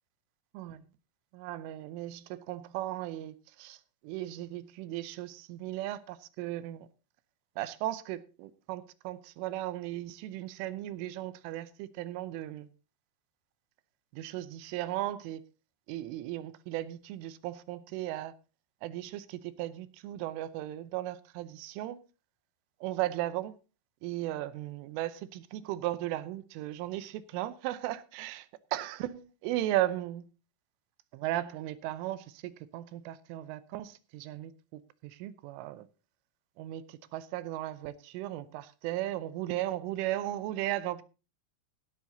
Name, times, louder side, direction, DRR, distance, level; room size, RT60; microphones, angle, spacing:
voice 1, 1.3-3.3 3.6-3.8 4.1-6.8 7.6-12.7 14.2-15.4 15.9-18.3 18.8-19.2 19.6-22.0 22.8-23.5 24.0-28.4 28.7-30.2 31.1-34.5 35.2-35.8 36.6-36.8 37.1-41.0, right 14 dB, 80° right, 3.1 m, -36 dB
16.5 x 12.5 x 2.8 m
omnidirectional pair, 5.9 m